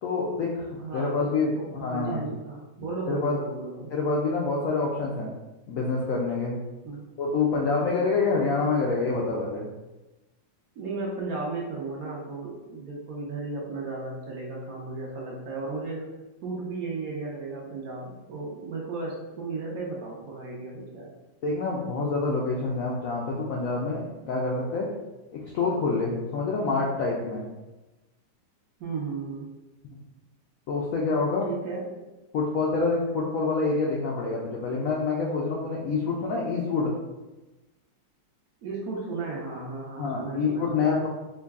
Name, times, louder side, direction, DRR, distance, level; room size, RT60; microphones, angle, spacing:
voice 1, 0.0-2.2 3.1-3.4 3.9-5.3 5.7-6.6 7.2-9.7 21.4-24.9 25.5-27.5 30.7-31.5 32.3-36.9 40.0-41.1, left 4 dB, 75° left, -2 dB, 0.7 m, -27 dB
voice 2, 0.8-3.9 6.8-7.0 10.7-16.0 16.4-21.1 28.8-29.5 31.4-31.9 38.6-41.0, right 3 dB, 65° right, -3 dB, 1.0 m, -35 dB
3.8 x 2.2 x 3.5 m, 1.1 s
omnidirectional pair, 1.9 m